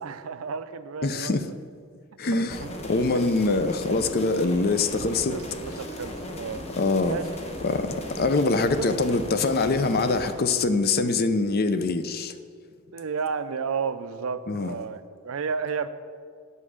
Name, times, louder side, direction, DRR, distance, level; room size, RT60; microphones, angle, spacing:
voice 1, 0.0-1.4 2.3-2.7 3.1-3.3 5.3-6.6 7.1-7.3 8.8-8.9 12.9-15.9, right 5 dB, 75° right, 12 dB, 0.5 m, -32 dB
voice 2, 1.0-1.5 2.2-2.6 2.8-5.4 6.8-7.2 7.6-12.3 14.5-14.7, left 3 dB, 45° left, 10 dB, 0.5 m, -24 dB
sound 1, 2.5-10.3, left 1 dB, 30° left, 1.0 m, -37 dB
9.5 x 5.5 x 6.4 m, 2.1 s
head